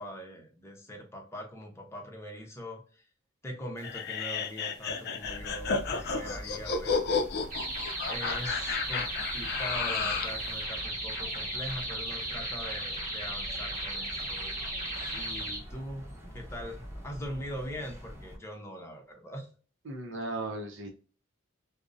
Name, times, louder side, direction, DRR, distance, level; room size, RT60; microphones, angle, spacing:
voice 1, 0.0-3.1 3.4-7.2 8.0-14.6 15.1-19.5, equal, 15° left, 0 dB, 0.6 m, -42 dB
sound 1, 3.8-10.4, left 5 dB, 55° left, 0.4 m, -32 dB
sound 2, 5.2-18.4, equal, 10° right, 0.9 m, -45 dB
sound 3, 7.5-15.6, right 1 dB, 40° right, 0.9 m, -36 dB
voice 2, 19.8-20.9, right 2 dB, 65° right, 3 dB, 0.6 m, -36 dB
2.5 x 2.0 x 2.5 m, 0.39 s
head